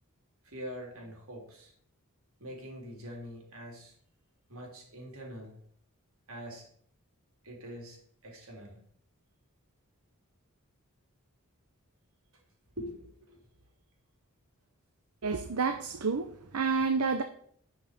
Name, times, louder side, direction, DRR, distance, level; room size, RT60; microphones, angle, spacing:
voice 1, 0.4-1.7 2.4-3.9 4.5-5.6 6.3-6.6 7.4-8.8 12.8-13.4, equal, 70° right, 3.5 m, -44 dB
voice 2, 15.2-17.2, right 4 dB, 85° right, 0.8 m, -29 dB
11.0 x 5.7 x 6.6 m
head